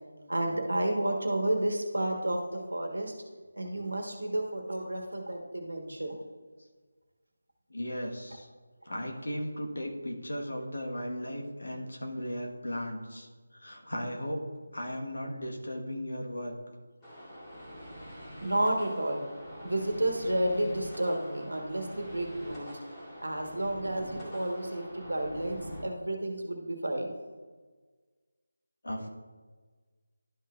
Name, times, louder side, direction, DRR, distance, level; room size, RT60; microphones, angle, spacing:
voice 1, 0.3-3.1 3.6-6.2 18.4-19.2 19.6-22.7 23.2-27.1, right 1 dB, 70° right, 2 dB, 1.4 m, -31 dB
voice 2, 7.7-8.5 8.8-13.3 13.5-14.4 14.7-16.5 28.8-29.1, equal, 65° left, 0 dB, 1.5 m, -36 dB
sound 1, 17.0-25.8, equal, 15° left, 2.2 m, -44 dB
11.5 x 5.6 x 2.5 m, 1.4 s
figure-of-eight pair, 160°, 0 cm